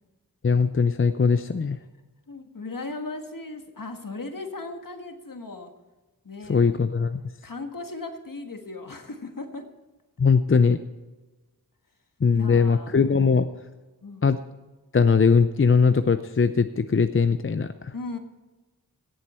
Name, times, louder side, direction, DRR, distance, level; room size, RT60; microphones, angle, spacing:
voice 1, 0.4-1.8 6.5-7.2 10.2-10.8 12.2-13.5 14.2-14.4 14.9-17.9, left 5 dB, 35° left, 10 dB, 0.5 m, -20 dB
voice 2, 2.3-5.7 6.2-6.7 7.4-9.7 12.3-13.1 14.0-14.3 17.9-18.2, left 3 dB, 60° left, 5 dB, 1.6 m, -37 dB
17.0 x 8.0 x 4.3 m, 1.2 s
wide cardioid pair, 60°, 38 cm